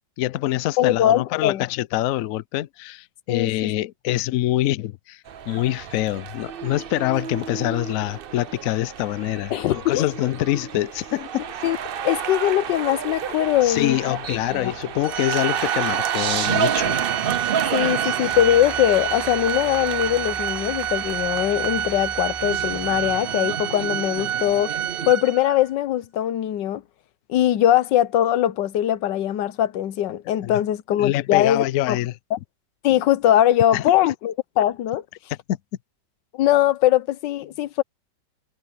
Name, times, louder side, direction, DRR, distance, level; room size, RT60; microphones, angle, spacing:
voice 1, 0.2-11.5 13.6-17.0 18.0-18.1 30.4-30.5 31.0-32.1 33.7-33.8 35.5-35.6, left 15 dB, 70° left, 0.8 m, -25 dB
voice 2, 0.8-1.6 3.3-3.7 9.5-10.1 11.6-11.8 12.0-14.2 14.5-14.7 17.7-24.7 25.1-26.8 27.3-32.0 32.8-35.0 36.3-37.8, left 12 dB, 85° left, 1.4 m, -21 dB
sound 1, 5.3-25.1, right 8 dB, 80° right, 0.5 m, -30 dB
Organ, 15.0-25.7, right 10 dB, 60° right, 1.2 m, -29 dB
sound 2, 18.3-23.4 24.0-24.1, equal, 5° right, 6.0 m, -42 dB
omnidirectional pair, 1.9 m